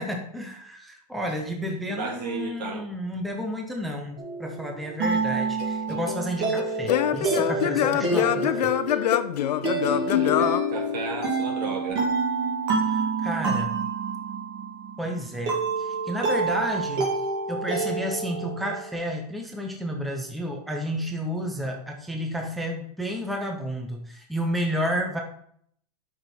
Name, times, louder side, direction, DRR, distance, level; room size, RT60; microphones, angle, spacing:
voice 1, 0.0-9.1 12.8-13.8 15.0-17.2 17.5-25.2, equal, ahead, 2 dB, 0.5 m, -31 dB
voice 2, 1.9-2.9 9.8-10.4 10.7-12.1, right 5 dB, 85° right, -1 dB, 2.8 m, -34 dB
sound 1, 4.2-18.9, right 4 dB, 35° right, 2.6 m, -28 dB
Singing / Plucked string instrument, 5.6-11.5, left 11 dB, 80° left, 0.8 m, -25 dB
10.0 x 6.2 x 4.2 m, 0.66 s
supercardioid pair, 180°, 21 cm